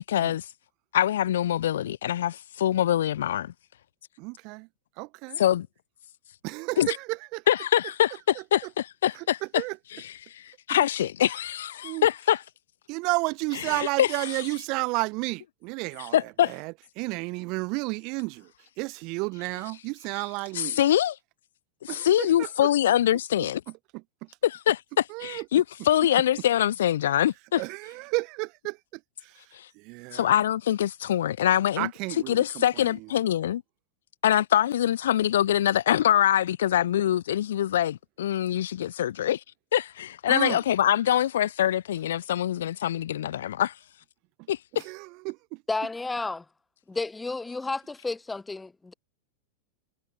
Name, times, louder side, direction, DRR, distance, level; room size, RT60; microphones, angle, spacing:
voice 1, 0.1-0.5 0.9-3.5 5.4-5.6 6.8-7.0 7.5-9.6 9.9-12.4 13.6-14.3 16.1-16.6 20.5-21.2 21.8-23.6 24.4-27.6 29.5-29.7 30.1-31.9 32.3-33.6 34.2-39.4 39.7-43.7 44.5-44.6, left 11 dB, 65° left, 0.4 m, -24 dB
voice 2, 4.2-4.7 5.0-5.4 6.4-7.4 9.1-9.2 9.5-9.8 11.8-12.1 12.9-18.5 18.8-20.8 21.9-22.7 25.1-25.6 27.6-28.8 29.2-29.4 29.8-30.3 31.8-32.9 40.3-40.6 44.8-45.6, right 27 dB, 45° right, 0.9 m, -32 dB
voice 3, 45.7-46.4 46.9-48.9, left 3 dB, 10° left, 0.7 m, -31 dB
figure-of-eight pair, 90°, 0 cm